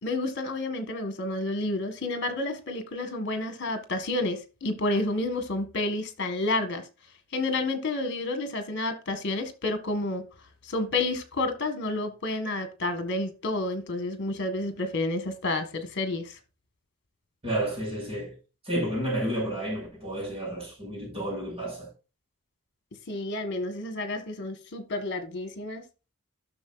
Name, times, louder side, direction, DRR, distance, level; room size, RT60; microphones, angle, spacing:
voice 1, 0.0-6.8 7.3-10.2 10.6-16.4 23.1-25.8, left 2 dB, 55° left, 1.5 m, -30 dB
voice 2, 17.4-18.4 18.6-21.9, right 1 dB, 30° right, 5.6 m, -31 dB
11.5 x 6.4 x 2.5 m
head